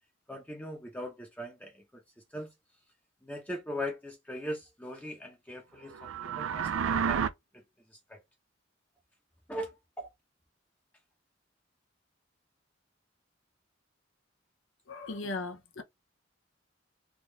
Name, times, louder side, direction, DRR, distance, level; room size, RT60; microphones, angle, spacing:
voice 1, 0.3-2.0 2.3-2.5 3.2-7.2 7.5-8.2 9.5-10.1, equal, 10° left, 0.7 m, -40 dB
sound 1, 5.9-7.3, right 7 dB, 90° right, 0.4 m, -30 dB
voice 2, 14.9-15.8, left 3 dB, 90° left, 0.7 m, -37 dB
3.5 x 2.4 x 3.0 m
head